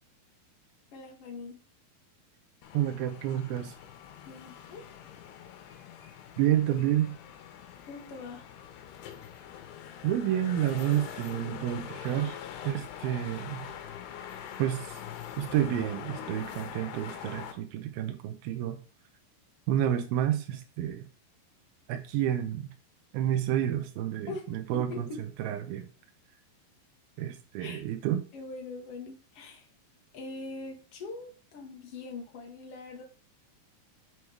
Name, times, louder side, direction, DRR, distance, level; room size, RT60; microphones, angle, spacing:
voice 1, 0.9-1.6 4.3-4.8 7.9-8.5 24.3-25.2 27.6-27.9 28.3-29.7 30.1-33.0, left 3 dB, 70° left, 2 dB, 1.4 m, -42 dB
sound 1, 2.6-17.5, left 9 dB, 90° left, 3.1 m, -44 dB
voice 2, 2.7-3.7 6.4-7.1 10.0-12.4 12.6-13.7 14.6-15.0 15.4-18.8 19.7-21.0 21.9-22.7 23.1-25.1 25.4-25.9 27.2-28.2, right 11 dB, 80° right, 5 dB, 2.5 m, -29 dB
7.1 x 4.8 x 4.7 m, 0.36 s
omnidirectional pair, 4.6 m